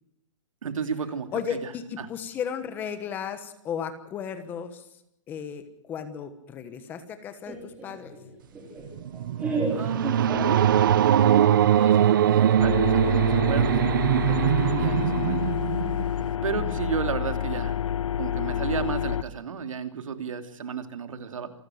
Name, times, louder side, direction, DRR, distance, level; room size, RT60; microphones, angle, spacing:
voice 1, 0.6-1.7 2.0-2.1 9.7-10.7 11.0-13.9 14.2-15.4 16.4-17.8 18.2-21.5, right 6 dB, 90° right, 8 dB, 2.9 m, -32 dB
voice 2, 1.3-5.0 5.3-8.2 16.5-16.7, left 7 dB, 10° left, 10 dB, 1.2 m, -35 dB
Laughter, 7.5-11.1, right 3 dB, 10° right, 4.1 m, -33 dB
sound 1, 8.9-16.2, right 10 dB, 40° right, 0.8 m, -22 dB
sound 2, 12.6-19.2, left 9 dB, 75° left, 0.9 m, -28 dB
27.5 x 13.5 x 7.7 m, 0.80 s
hypercardioid pair, 175°, 16 cm